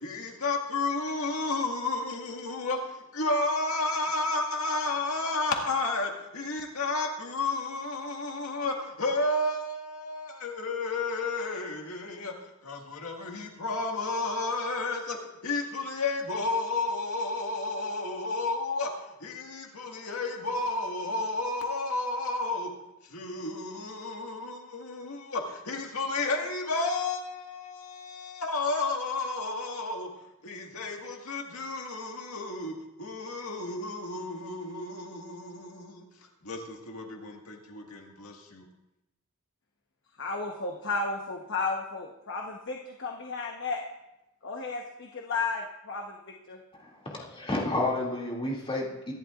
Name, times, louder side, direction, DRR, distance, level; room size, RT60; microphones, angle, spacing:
voice 1, 0.0-12.3 12.6-15.2 15.4-18.9 19.2-22.7 23.1-30.1 30.4-36.0 36.4-38.6, left 2 dB, 85° left, 1.9 m, -32 dB
voice 2, 40.2-43.8 44.4-46.6, left 3 dB, 60° left, 1.1 m, -33 dB
voice 3, 46.8-49.1, left 2 dB, 25° left, 2.5 m, -31 dB
23.0 x 11.0 x 2.5 m
head